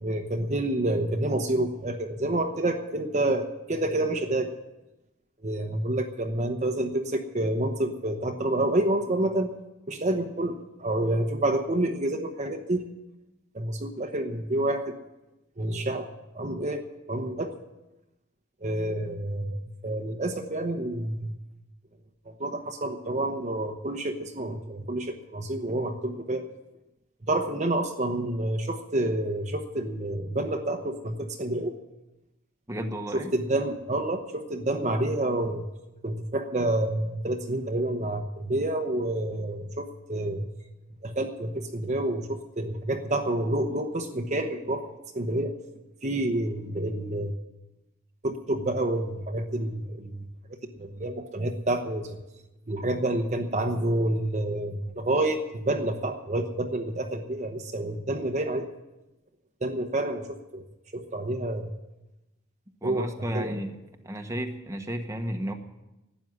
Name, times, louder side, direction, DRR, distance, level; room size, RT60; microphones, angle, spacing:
voice 1, 0.0-4.6 5.4-9.5 9.9-12.8 13.5-14.8 15.6-16.1 16.3-17.5 18.6-21.3 22.3-26.4 27.3-31.7 33.1-35.6 36.0-40.5 41.0-45.6 46.0-47.3 48.2-50.3 50.8-52.2 52.7-58.7 59.6-60.3 60.5-60.6 60.9-61.7 62.8-63.1 63.3-63.6, right 1 dB, 35° right, 5 dB, 1.0 m, -28 dB
voice 2, 32.7-33.3 62.8-63.8 64.0-65.5, equal, 15° right, 5 dB, 1.2 m, -33 dB
12.5 x 9.2 x 9.5 m, 0.98 s
head